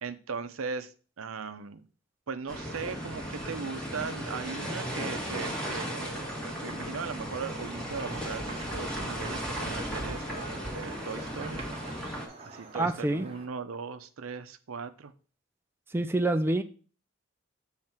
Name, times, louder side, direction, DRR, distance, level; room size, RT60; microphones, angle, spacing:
voice 1, 0.0-1.8 2.3-11.6 12.5-15.1, right 5 dB, 90° right, 10 dB, 0.7 m, -38 dB
sound 1, 2.5-12.3, equal, 5° left, 1.6 m, -36 dB
sound 2, 7.9-13.5, right 2 dB, 30° right, 1.3 m, -46 dB
voice 2, 12.7-13.3 15.9-16.6, right 2 dB, 10° right, 7 dB, 0.4 m, -26 dB
7.2 x 3.2 x 5.9 m, 0.38 s
head